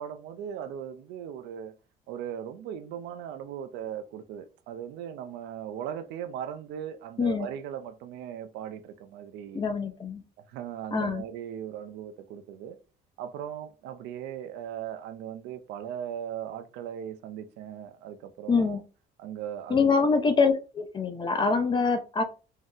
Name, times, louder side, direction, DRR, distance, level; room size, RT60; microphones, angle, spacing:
voice 1, 0.0-1.7 2.1-9.6 10.5-12.8 13.2-18.8 19.2-20.1, right 9 dB, 85° right, 0.4 m, -38 dB
voice 2, 9.5-10.2 10.9-11.2 18.5-18.8 19.7-22.2, left 4 dB, 30° left, 0.5 m, -25 dB
2.7 x 2.0 x 3.6 m
cardioid pair, 110°, 17 cm